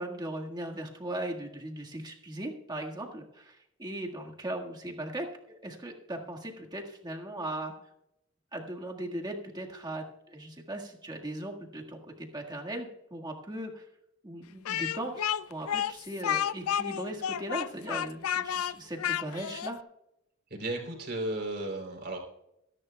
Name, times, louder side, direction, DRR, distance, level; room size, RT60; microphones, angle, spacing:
voice 1, 0.0-7.7 8.5-13.9 14.2-19.8, right 1 dB, 20° right, 1 dB, 1.7 m, -38 dB
Speech, 14.6-19.7, left 9 dB, 80° left, 0.4 m, -31 dB
voice 2, 20.5-22.2, right 1 dB, 50° right, 1 dB, 3.4 m, -34 dB
23.5 x 10.5 x 2.3 m, 0.82 s
head